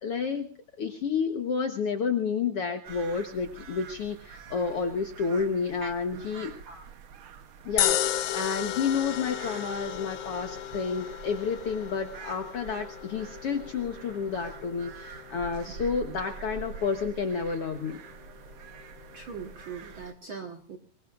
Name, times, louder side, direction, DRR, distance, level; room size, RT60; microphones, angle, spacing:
voice 1, 0.0-0.5 0.8-6.5 7.7-18.0, left 5 dB, 60° left, 5 dB, 1.6 m, -30 dB
sound 1, 2.8-20.1, right 6 dB, 90° right, 1.1 m, -46 dB
voice 2, 5.8-6.2 6.6-6.9 16.1-16.2 19.1-20.8, right 5 dB, 50° right, 3 dB, 1.6 m, -41 dB
sound 2, 7.8-20.1, left 12 dB, 80° left, 2.6 m, -35 dB
25.0 x 21.5 x 2.5 m, 0.38 s
omnidirectional pair, 4.0 m